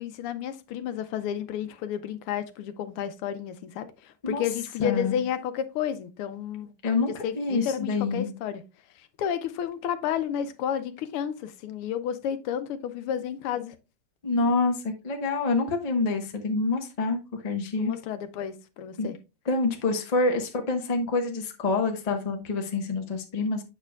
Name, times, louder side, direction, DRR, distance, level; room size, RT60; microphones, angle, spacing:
voice 1, 0.0-6.7 7.2-8.6 9.2-13.7 17.8-19.2, left 9 dB, 90° left, 1.7 m, -31 dB
voice 2, 4.8-5.2 6.8-8.3 14.2-17.9 19.0-19.1 19.5-23.6, left 3 dB, 35° left, 0.6 m, -27 dB
7.8 x 6.7 x 2.3 m
omnidirectional pair, 2.4 m